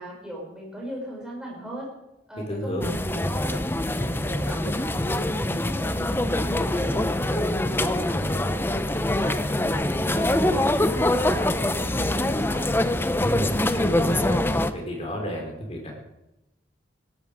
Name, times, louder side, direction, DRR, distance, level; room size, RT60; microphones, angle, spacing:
voice 1, 0.0-1.9 2.3-8.8 9.2-12.7, right 1 dB, 5° right, -3 dB, 5.7 m, -38 dB
voice 2, 2.5-2.9 13.2-14.4 14.7-15.9, equal, 35° left, 1 dB, 3.9 m, -31 dB
sound 1, 2.8-14.7, left 1 dB, 10° left, 0.6 m, -24 dB
16.5 x 13.0 x 4.9 m, 0.92 s
head